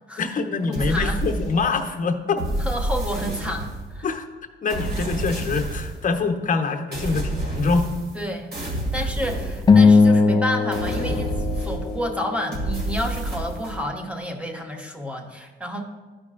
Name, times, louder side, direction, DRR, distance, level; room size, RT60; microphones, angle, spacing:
voice 1, 0.2-2.4 4.0-4.3 4.6-7.9 8.9-9.1, left 4 dB, 40° left, 4 dB, 0.8 m, -24 dB
voice 2, 0.7-1.2 2.6-4.1 8.1-15.8, equal, 5° right, 2 dB, 1.0 m, -30 dB
sound 1, 0.7-1.8 2.4-4.0 4.7-6.0 6.9-8.2 8.5-10.1 10.7-12.1 12.5-13.8, right 1 dB, 55° right, 2.3 m, -29 dB
sound 2, 9.7-12.3, left 4 dB, 20° left, 0.4 m, -18 dB
12.0 x 5.2 x 2.5 m, 1.3 s
cardioid pair, 90°, 20 cm